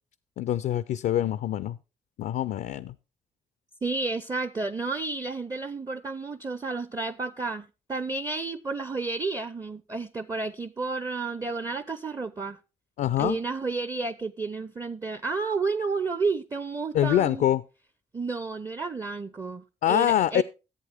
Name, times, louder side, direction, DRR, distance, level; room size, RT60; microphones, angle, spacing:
voice 1, 0.4-1.8 2.2-3.0 13.0-13.4 16.9-17.6 19.8-20.4, left 11 dB, 70° left, 0.4 m, -24 dB
voice 2, 3.8-12.6 13.2-17.4 18.1-20.4, right 4 dB, 25° right, 0.6 m, -31 dB
11.0 x 8.0 x 3.4 m
hypercardioid pair, 40°, 16 cm